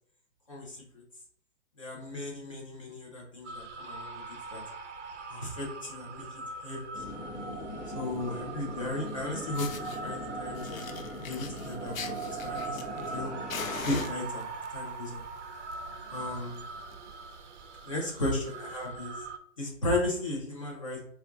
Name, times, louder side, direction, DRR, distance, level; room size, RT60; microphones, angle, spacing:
voice 1, 0.5-1.0 1.8-4.2 4.5-4.6 5.3-7.0 7.9-13.3 13.8-14.5 14.7-15.2 15.9-16.6 17.9-19.1 19.6-21.0, left 2 dB, 25° left, -3 dB, 0.6 m, -35 dB
sound 1, 3.4-19.4, right 4 dB, 65° right, 0.5 m, -41 dB
sound 2, 6.9-14.1, left 2 dB, 45° left, 0.9 m, -41 dB
Fire, 9.1-9.2 9.5-10.0 10.5-13.2 13.5-14.7 15.5-15.7 16.1-16.2 16.5-16.6 16.9-17.1 17.7-17.8 18.7-18.8, left 6 dB, 80° left, 0.6 m, -41 dB
4.1 x 2.3 x 2.5 m, 0.64 s
hypercardioid pair, 170°, 39 cm